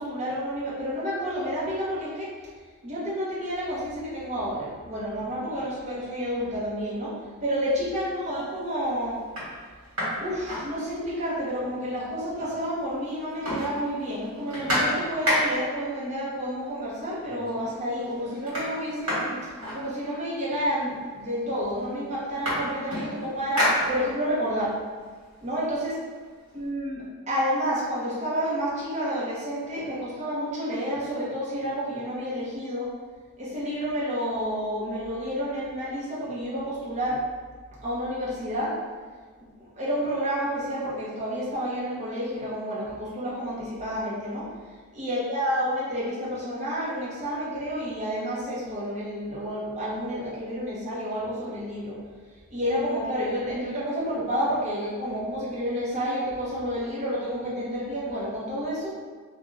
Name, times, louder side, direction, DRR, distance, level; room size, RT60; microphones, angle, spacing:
voice 1, 0.0-2.3 2.8-7.1 7.4-9.2 10.2-19.4 19.7-24.7 25.4-25.9 26.5-32.9 33.4-37.2 37.8-38.7 39.6-44.5 44.9-52.0 52.5-58.9, equal, 35° right, -8 dB, 0.8 m, -30 dB
sound 1, 7.8-8.3 8.8-8.9 9.2-11.3 11.6-11.7 12.0-12.8 13.1-15.8 16.8-16.9 17.2-17.7 18.0-20.4 21.2-21.3 21.6-24.4 24.8-26.6, equal, 75° right, 1.3 m, -30 dB
2.4 x 2.3 x 3.1 m, 1.5 s
head